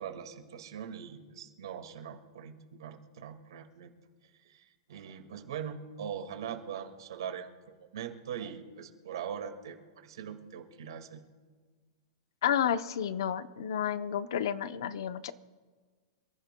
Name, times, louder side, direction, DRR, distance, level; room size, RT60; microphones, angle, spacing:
voice 1, 0.0-3.9 4.5-11.2, right 8 dB, 75° right, 5 dB, 1.9 m, -42 dB
voice 2, 12.4-15.3, left 9 dB, 65° left, 12 dB, 0.7 m, -31 dB
27.5 x 15.0 x 2.2 m, 1.5 s
supercardioid pair, 180°, 2 cm